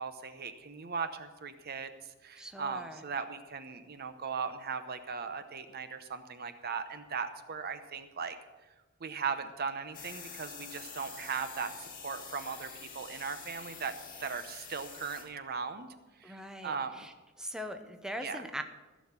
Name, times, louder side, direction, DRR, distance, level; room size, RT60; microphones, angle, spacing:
voice 1, 0.0-1.9 2.2-8.4 9.0-13.9 14.2-15.9 16.2-17.1 18.2-18.4, right 5 dB, 50° right, 10 dB, 0.8 m, -38 dB
voice 2, 2.4-3.0 16.2-17.1 17.4-18.6, equal, 5° right, 6 dB, 0.8 m, -41 dB
sound 1, 9.9-15.2, left 6 dB, 40° left, 2.3 m, -47 dB
15.5 x 6.3 x 7.5 m, 1.2 s
head